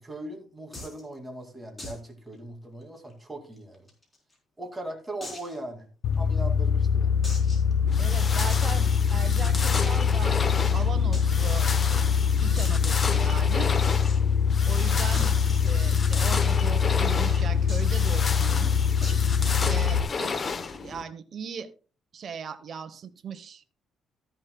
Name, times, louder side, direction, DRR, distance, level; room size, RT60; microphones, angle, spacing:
voice 1, 0.0-3.9 4.6-5.9 6.2-7.2 12.4-12.6 19.2-19.6, right 1 dB, 10° right, 2 dB, 2.5 m, -40 dB
sound 1, 0.7-1.0 1.8-2.1 2.3-2.4 2.8-2.9 3.6-4.3 5.2-5.6 6.1-6.2 7.2-7.7 8.5-8.7 9.7-10.2 11.1-11.2 11.5-11.6 11.9-12.0 12.6-12.8 13.8-14.2 15.1-16.2 17.7-18.0 19.0-19.4, left 1 dB, 20° left, 3.9 m, -40 dB
sound 2, 6.0-20.0, left 6 dB, 75° left, 1.0 m, -23 dB
sound 3, 7.9-21.0, left 5 dB, 35° left, 0.9 m, -33 dB
voice 2, 8.0-10.4 10.7-11.7 12.4-13.7 14.7-15.3 15.6-18.9 19.6-20.3 20.7-21.7 22.1-23.6, right 6 dB, 45° right, 9 dB, 1.0 m, -38 dB
13.5 x 10.5 x 2.3 m, 0.36 s
cardioid pair, 115°, 0 cm